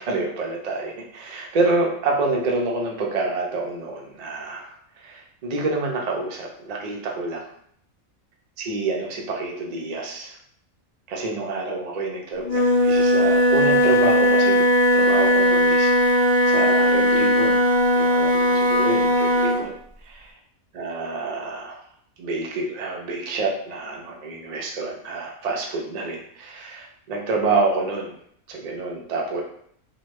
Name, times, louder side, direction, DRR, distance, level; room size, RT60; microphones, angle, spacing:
voice 1, 0.0-7.4 8.7-10.4 11.1-14.7 14.9-17.6 17.9-19.8 20.0-20.3 20.8-21.8 22.2-28.1 28.5-29.4, right 3 dB, 90° right, -1 dB, 0.3 m, -28 dB
Wind instrument woodwind instrument, 12.4-19.6, equal, 35° left, 0.7 m, -18 dB
3.0 x 2.1 x 3.0 m, 0.65 s
omnidirectional pair, 1.4 m